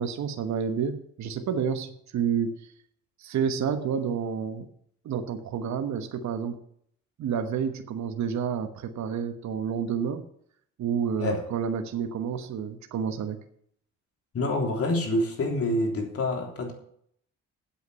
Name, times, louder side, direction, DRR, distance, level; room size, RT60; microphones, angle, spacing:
voice 1, 0.0-2.5 3.2-4.7 5.0-6.6 7.2-10.2 10.8-13.4, right 7 dB, 65° right, 7 dB, 1.2 m, -29 dB
voice 2, 14.3-16.7, left 2 dB, 50° left, 1 dB, 3.5 m, -27 dB
8.2 x 8.2 x 8.3 m, 0.67 s
cardioid pair, 90°, 30 cm